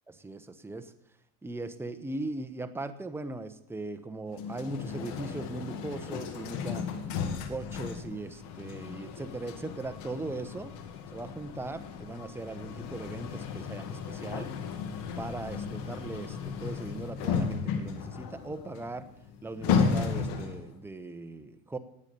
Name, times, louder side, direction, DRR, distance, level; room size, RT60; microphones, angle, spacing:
voice 1, 0.2-0.9 1.4-6.9 7.5-10.7 11.1-14.6 15.2-19.1 19.4-21.8, right 2 dB, 5° right, 8 dB, 0.9 m, -39 dB
sound 1, 4.3-20.7, left 6 dB, 70° left, 2.4 m, -34 dB
18.0 x 9.1 x 6.9 m, 0.79 s
cardioid pair, 130°, 40 cm